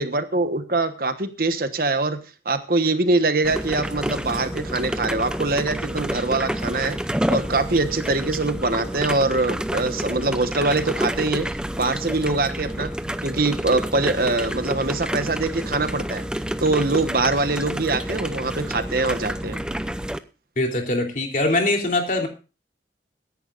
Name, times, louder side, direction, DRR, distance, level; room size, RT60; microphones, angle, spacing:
voice 1, 0.0-2.2 2.4-7.0 7.3-11.5 11.8-12.9 13.2-16.2 16.6-19.6, right 3 dB, 55° right, 9 dB, 1.2 m, -23 dB
sound 1, 3.4-20.2, right 1 dB, 5° right, 0.5 m, -29 dB
voice 2, 20.6-22.3, left 2 dB, 45° left, 2 dB, 3.1 m, -22 dB
22.5 x 10.5 x 2.5 m, 0.32 s
head